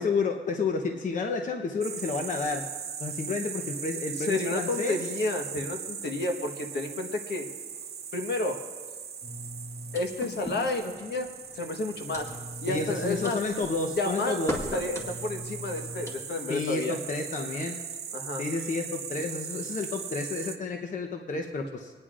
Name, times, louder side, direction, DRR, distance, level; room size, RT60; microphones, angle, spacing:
voice 1, 0.0-2.6 3.0-5.0 12.7-14.6 16.5-17.8 18.4-21.9, left 4 dB, 45° left, 3 dB, 0.9 m, -31 dB
sound 1, 1.8-20.6, right 7 dB, 60° right, 0.8 m, -39 dB
voice 2, 4.2-7.4 8.1-8.6 9.9-12.3 12.6-13.4 14.0-14.4 14.7-17.0 18.1-18.4, left 2 dB, 65° left, 4 dB, 1.3 m, -31 dB
sound 2, 9.2-16.2, equal, 15° left, 2.0 m, -39 dB
27.0 x 9.7 x 2.5 m, 1.4 s
cardioid pair, 120°, 19 cm